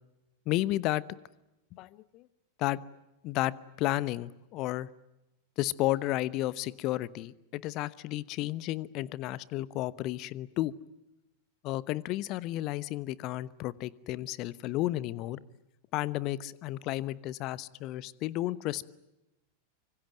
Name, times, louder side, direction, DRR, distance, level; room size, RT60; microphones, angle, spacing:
voice 1, 0.5-1.0 1.7-2.3 2.6-2.8 3.2-4.9 5.6-10.7 11.6-15.4 15.9-18.9, left 16 dB, 40° left, 19 dB, 1.0 m, -32 dB
25.5 x 24.5 x 9.1 m, 0.95 s
figure-of-eight pair, 90°, 0 cm